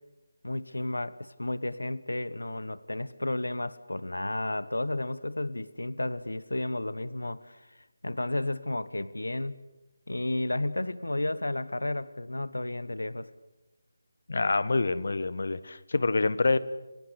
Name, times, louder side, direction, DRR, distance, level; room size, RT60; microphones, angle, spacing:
voice 1, 0.4-9.6 10.1-13.3, left 1 dB, 80° left, 16 dB, 1.2 m, -32 dB
voice 2, 14.3-16.6, left 3 dB, 60° left, 16 dB, 1.4 m, -26 dB
28.0 x 21.5 x 8.3 m, 1.1 s
figure-of-eight pair, 160°, 0 cm